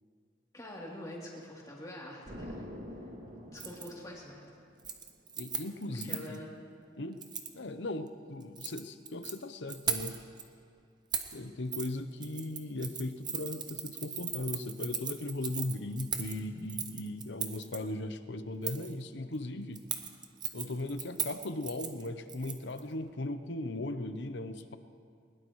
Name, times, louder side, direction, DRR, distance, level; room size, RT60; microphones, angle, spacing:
voice 1, 0.5-2.6 3.4-4.5 6.0-6.5, left 1 dB, 20° left, -5 dB, 3.1 m, -45 dB
Explosion, 2.3-4.9, equal, 70° right, 2.5 m, -46 dB
Keys jangling, 3.6-3.9 4.2-4.5 4.8-6.4 7.2-7.5 8.4-9.3 9.7-10.4 11.1-11.4 11.7-11.9 12.2-17.8 18.6-18.9 19.8-22.8 23.1-23.2, right 7 dB, 25° right, 0.7 m, -38 dB
voice 2, 5.3-6.4 7.0-7.2 7.5-10.2 11.3-19.8 20.5-24.8, left 2 dB, 70° left, 10 dB, 0.8 m, -38 dB
21.0 x 20.5 x 3.2 m, 2.3 s
head